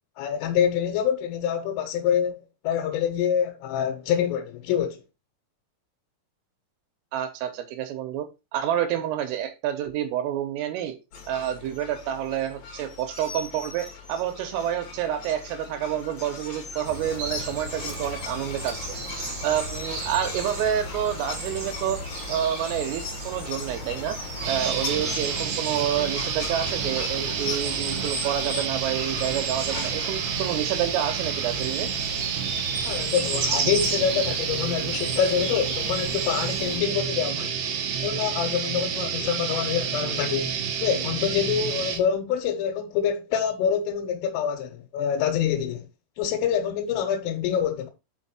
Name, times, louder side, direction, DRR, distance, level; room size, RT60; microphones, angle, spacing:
voice 1, 0.2-5.0 32.8-37.6 38.0-45.9 46.2-47.9, left 8 dB, 90° left, 3.5 m, -26 dB
voice 2, 7.1-11.0 11.3-18.8 19.4-22.0 22.3-24.2 24.5-31.9, right 10 dB, 90° right, 3.7 m, -28 dB
sound 1, 11.1-25.4 25.8-28.6 29.0-30.1, left 5 dB, 50° left, 2.4 m, -38 dB
sound 2, 16.8-36.8, right 3 dB, 40° right, 2.7 m, -35 dB
sound 3, 24.4-42.0, right 7 dB, 70° right, 2.8 m, -29 dB
6.2 x 5.8 x 4.3 m
omnidirectional pair, 5.7 m